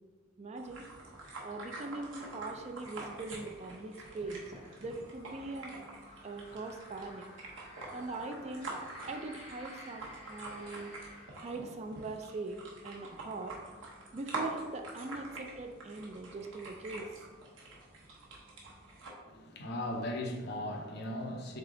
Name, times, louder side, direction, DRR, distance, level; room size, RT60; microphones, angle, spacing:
voice 1, 0.4-0.9 1.4-4.5 4.8-5.8 6.2-7.3 7.9-8.7 9.0-10.9 11.4-13.6 14.1-17.0, right 3 dB, 35° right, 5 dB, 0.3 m, -41 dB
sound 1, 0.6-19.1, right 2 dB, 90° right, 0.9 m, -46 dB
sound 2, 4.2-11.3, left 1 dB, 35° left, 1.3 m, -54 dB
voice 2, 19.3-21.6, left 1 dB, 60° left, 2 dB, 0.7 m, -37 dB
3.7 x 3.4 x 3.7 m, 1.4 s
head